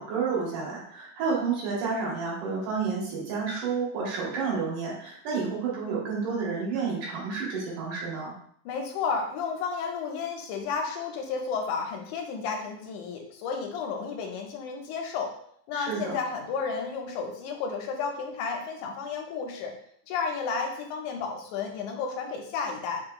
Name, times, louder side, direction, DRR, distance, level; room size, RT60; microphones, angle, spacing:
voice 1, 0.0-8.4 15.7-16.2, right 5 dB, 90° right, -4 dB, 2.8 m, -30 dB
voice 2, 8.7-15.3 15.7-19.7 20.1-23.0, left 5 dB, 85° left, 2 dB, 2.0 m, -32 dB
5.5 x 2.9 x 2.3 m, 0.65 s
omnidirectional pair, 3.4 m